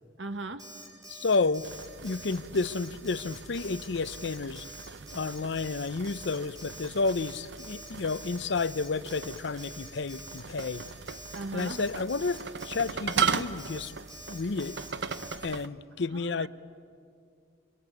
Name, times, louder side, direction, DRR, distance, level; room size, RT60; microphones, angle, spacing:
voice 1, 0.2-0.6 11.3-11.8 16.1-16.5, right 2 dB, 85° right, 1.3 m, -38 dB
Alarm, 0.6-15.4, right 1 dB, 20° right, 4.3 m, -46 dB
voice 2, 1.1-1.7 2.0-4.6 5.1-10.8 11.5-13.9 14.3-14.8 15.4-16.5, left 4 dB, 65° left, 0.6 m, -31 dB
sound 1, 1.6-15.7, right 6 dB, 65° right, 0.8 m, -38 dB
26.5 x 22.0 x 9.5 m
head